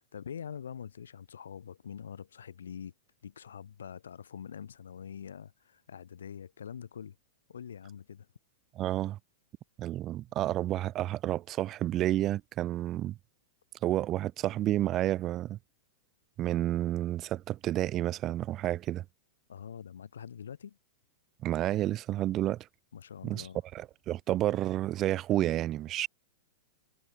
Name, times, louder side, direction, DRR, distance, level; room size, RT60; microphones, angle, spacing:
voice 1, 0.1-2.9 3.2-7.2 7.5-8.3 19.5-20.8 22.9-23.6, left 8 dB, 85° left, 1.0 m, -44 dB
voice 2, 8.8-9.2 9.8-13.2 13.8-15.6 16.4-19.0 21.4-22.7 23.2-23.5 23.7-26.1, right 13 dB, 35° right, 0.3 m, -30 dB
hypercardioid pair, 115°, 0 cm